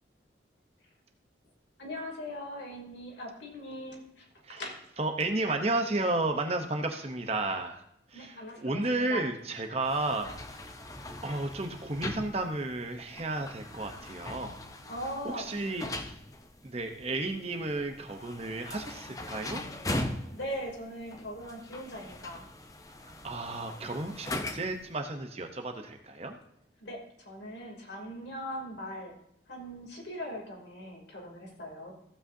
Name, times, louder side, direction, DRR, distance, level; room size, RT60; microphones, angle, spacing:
voice 1, 1.8-4.3 4.6-4.8 8.1-9.2 14.8-16.0 20.3-22.4 26.8-27.0 27.2-29.1 29.5-31.9, equal, 80° left, 0 dB, 3.0 m, -40 dB
voice 2, 5.0-7.8 8.1-10.6 11.2-14.6 15.2-16.1 16.6-19.6 23.0-26.4, right 2 dB, 35° right, 5 dB, 0.8 m, -33 dB
sound 1, 9.8-24.9, left 1 dB, 20° left, 0.7 m, -41 dB
15.0 x 8.6 x 2.7 m, 0.77 s
head